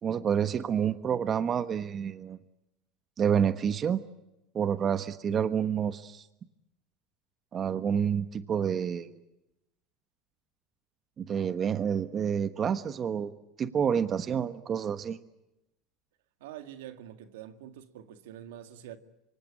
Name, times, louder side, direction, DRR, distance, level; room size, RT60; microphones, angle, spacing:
voice 1, 0.0-2.4 3.2-4.0 4.5-6.3 7.5-9.1 11.2-15.2, right 8 dB, 35° right, 1.3 m, -28 dB
voice 2, 16.4-19.0, right 11 dB, 80° right, 2.1 m, -45 dB
26.0 x 24.5 x 8.6 m
supercardioid pair, 100°, 0 cm